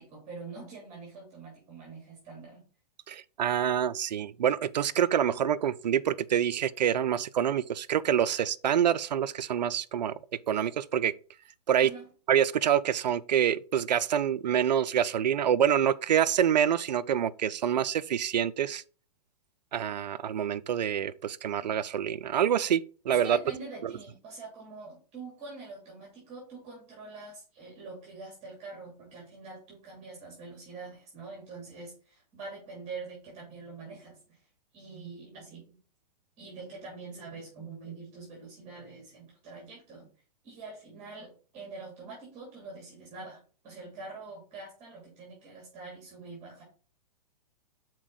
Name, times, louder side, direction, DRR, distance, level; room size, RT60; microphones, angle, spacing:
voice 1, 0.0-2.6 11.8-12.1 23.1-34.4 34.7-35.8 36.4-40.1 40.4-46.6, right 3 dB, 30° right, 2.9 m, -45 dB
voice 2, 3.1-10.1 10.5-11.1 11.7-11.9 12.3-18.8 19.7-23.4 23.8-23.9, right 9 dB, 85° right, 0.5 m, -26 dB
6.2 x 4.5 x 3.9 m
hypercardioid pair, 130°, 21 cm